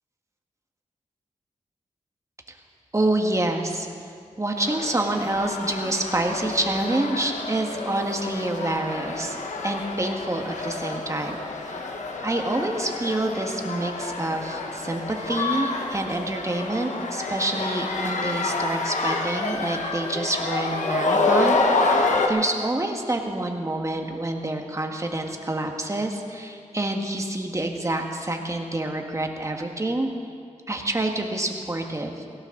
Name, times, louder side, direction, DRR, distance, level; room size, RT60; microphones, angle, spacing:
voice 1, 2.9-3.9 4.4-9.4 9.6-11.4 11.7-11.9 12.2-30.1 30.7-32.2, right 2 dB, 25° right, 3 dB, 1.6 m, -27 dB
sound 1, 4.6-22.3, left 3 dB, 85° left, 1.3 m, -28 dB
17.0 x 17.0 x 3.9 m, 2.3 s
wide cardioid pair, 70°, 12 cm